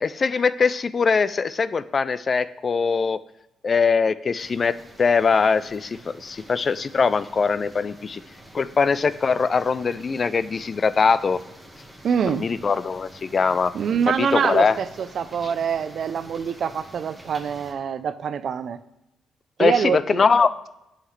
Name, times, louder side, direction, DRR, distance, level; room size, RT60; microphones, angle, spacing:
voice 1, 0.0-3.2 3.6-4.7 5.0-8.2 8.5-11.4 12.3-13.7 14.2-14.8 19.6-20.6, left 5 dB, 40° left, 15 dB, 0.3 m, -22 dB
sound 1, 4.4-17.7, equal, ahead, 1.5 m, -47 dB
voice 2, 12.0-12.5 13.7-18.8 19.6-20.3, right 7 dB, 60° right, 13 dB, 0.4 m, -25 dB
9.8 x 5.7 x 3.2 m, 0.90 s
cardioid pair, 90°, 0 cm